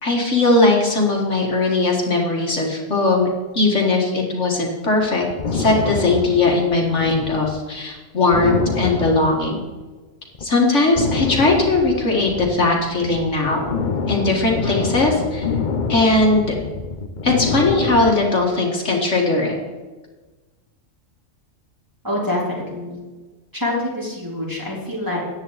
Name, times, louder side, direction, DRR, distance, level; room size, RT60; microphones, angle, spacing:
voice 1, 0.0-3.3 3.5-5.3 5.5-9.6 10.4-13.8 14.1-15.5 15.9-16.6 17.2-19.6, left 2 dB, 60° left, 0 dB, 2.1 m, -19 dB
sound 1, 5.0-7.6 7.9-8.0 8.3-10.0 10.3-10.5 10.9-18.2, left 4 dB, 40° left, 0.8 m, -26 dB
voice 2, 22.0-23.0 23.5-25.2, left 1 dB, 15° right, -5 dB, 3.6 m, -25 dB
14.0 x 9.6 x 4.1 m, 1.3 s
omnidirectional pair, 1.4 m